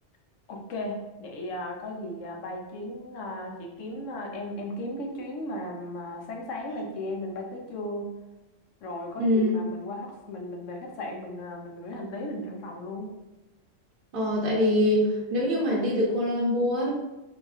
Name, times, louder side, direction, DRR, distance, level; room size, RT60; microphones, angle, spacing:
voice 1, 0.5-8.1 8.8-13.1, left 1 dB, 80° left, 1 dB, 1.0 m, -36 dB
voice 2, 9.2-9.5 14.1-16.9, left 1 dB, 50° right, -5 dB, 0.8 m, -24 dB
4.0 x 2.8 x 2.4 m, 1.0 s
omnidirectional pair, 1.3 m